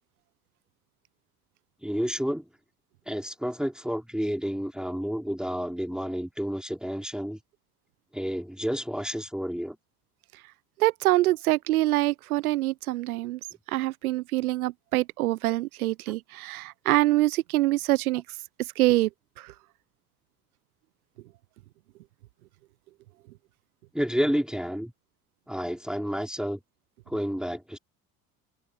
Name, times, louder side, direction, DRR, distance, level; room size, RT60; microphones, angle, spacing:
voice 1, 1.8-2.5 3.1-7.4 8.1-9.8 23.9-24.9 25.5-26.6 27.1-27.8, equal, ahead, 4.2 m, -30 dB
voice 2, 10.8-13.4 13.7-18.2 18.8-19.1 19.4-19.5, right 17 dB, 70° right, 1.1 m, -25 dB
figure-of-eight pair, 65°, 45 cm